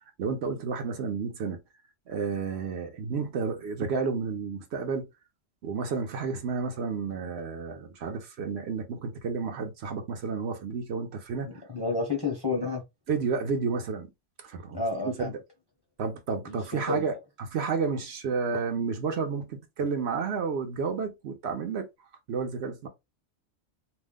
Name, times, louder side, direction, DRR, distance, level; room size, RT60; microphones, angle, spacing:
voice 1, 0.2-1.6 2.1-5.1 5.6-11.5 13.1-14.1 14.4-15.3 16.0-21.9 22.3-22.9, right 5 dB, 65° right, 0.9 m, -31 dB
voice 2, 11.4-12.8 14.7-15.3 16.5-17.0, left 3 dB, 25° left, 0.6 m, -31 dB
2.6 x 2.0 x 3.5 m
omnidirectional pair, 1.2 m